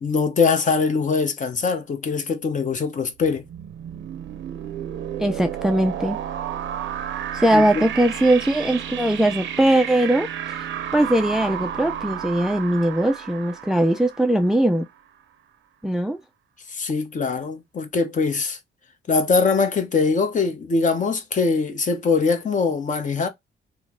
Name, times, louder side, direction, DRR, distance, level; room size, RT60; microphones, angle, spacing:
voice 1, 0.0-3.4 7.5-7.8 16.7-18.6 19.1-23.3, left 4 dB, 40° left, 0.9 m, -22 dB
sound 1, 3.2-14.9, right 10 dB, 75° right, 0.6 m, -32 dB
voice 2, 5.2-6.2 7.3-10.3 10.6-14.9 15.8-16.2, right 1 dB, ahead, 0.3 m, -20 dB
3.1 x 2.1 x 3.6 m
cardioid pair, 90°, 20 cm